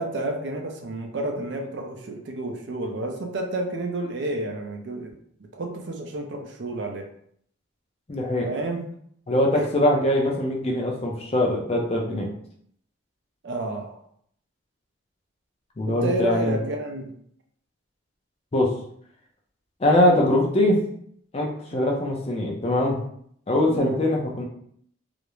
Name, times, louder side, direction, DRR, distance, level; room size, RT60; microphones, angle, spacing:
voice 1, 0.0-5.1 5.5-7.1 8.5-8.8 9.5-9.7 13.4-14.0 15.9-17.1 21.7-22.0 23.7-24.0, right 2 dB, 60° right, 3 dB, 0.4 m, -30 dB
voice 2, 8.1-8.5 9.3-12.3 15.8-16.6 18.5-18.7 19.8-20.8 21.3-23.0 23.5-24.4, left 1 dB, 30° left, -1 dB, 0.4 m, -22 dB
2.4 x 2.0 x 3.0 m, 0.65 s
head